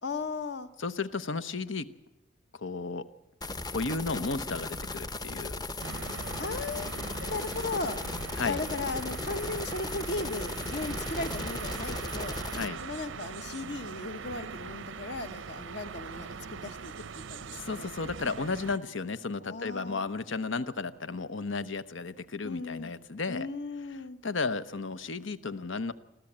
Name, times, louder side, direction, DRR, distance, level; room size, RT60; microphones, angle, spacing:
voice 1, 0.0-0.7 6.4-8.0 8.4-12.4 12.8-17.9 19.4-20.1 22.4-22.9 23.3-24.2, left 3 dB, 60° left, 11 dB, 1.1 m, -37 dB
voice 2, 0.8-1.9 2.5-3.1 3.7-5.6 8.3-8.6 12.5-12.8 17.6-23.5 23.9-25.9, left 4 dB, 85° left, 13 dB, 1.0 m, -34 dB
sound 1, 3.4-12.7, left 2 dB, 20° left, 0.7 m, -37 dB
sound 2, 5.8-18.8, right 5 dB, 85° right, 0.7 m, -41 dB
25.5 x 14.5 x 8.7 m, 0.96 s
head